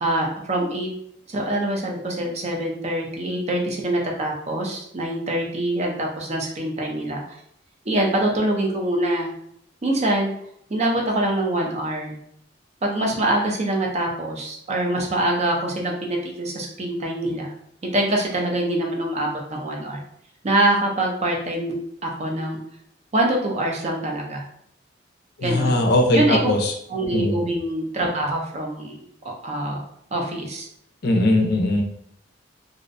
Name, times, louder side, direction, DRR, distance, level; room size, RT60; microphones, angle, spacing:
voice 1, 0.0-0.9 1.3-7.4 7.9-9.3 9.8-10.3 10.7-12.2 12.8-17.5 17.9-20.0 20.4-22.6 23.1-24.4 25.4-25.8 26.1-26.5 26.9-29.0 29.2-29.8 30.1-30.7, right 1 dB, 35° right, 0 dB, 0.5 m, -24 dB
voice 2, 25.4-26.7 27.1-27.3 31.0-31.8, left 1 dB, 60° left, 2 dB, 0.4 m, -20 dB
2.5 x 2.1 x 2.5 m, 0.69 s
head